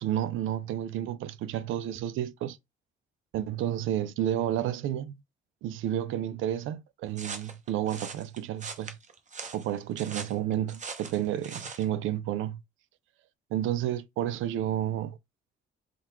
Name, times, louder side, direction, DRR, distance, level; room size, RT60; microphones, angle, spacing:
voice 1, 0.0-2.6 3.3-5.2 5.6-9.0 9.5-12.6 13.5-15.2, right 11 dB, 85° right, 0.5 m, -31 dB
sound 1, 7.1-11.9, right 5 dB, 35° right, 0.8 m, -41 dB
3.8 x 2.2 x 4.4 m
cardioid pair, 90°, 20 cm